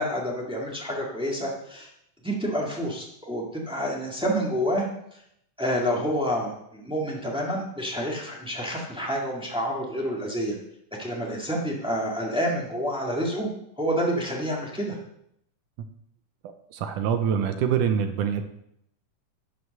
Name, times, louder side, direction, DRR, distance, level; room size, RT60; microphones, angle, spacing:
voice 1, 0.0-1.9 2.2-4.9 5.1-5.2 5.6-10.5 11.0-13.5 13.8-15.0, equal, 5° right, -2 dB, 0.7 m, -28 dB
voice 2, 16.7-18.4, right 8 dB, 75° right, 7 dB, 2.1 m, -24 dB
11.0 x 5.3 x 6.5 m, 0.75 s
omnidirectional pair, 3.8 m